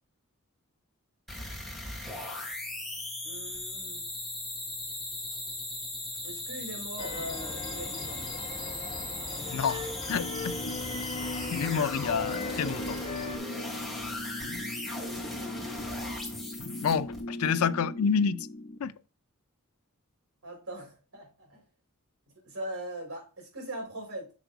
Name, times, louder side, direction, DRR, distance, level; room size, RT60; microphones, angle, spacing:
sound 1, 1.3-17.2, left 2 dB, ahead, 2.8 m, -38 dB
voice 1, 3.2-4.1 6.2-8.3 20.4-21.6 22.4-24.3, right 1 dB, 80° right, 3.9 m, -40 dB
sound 2, 7.0-13.4, left 3 dB, 25° left, 1.8 m, -39 dB
voice 2, 9.5-9.8 10.1-10.5 11.5-13.0 16.8-18.5 18.8-18.9, left 6 dB, 85° left, 0.5 m, -28 dB
sound 3, 10.1-18.8, left 1 dB, 40° left, 0.7 m, -39 dB
6.3 x 4.5 x 3.9 m
head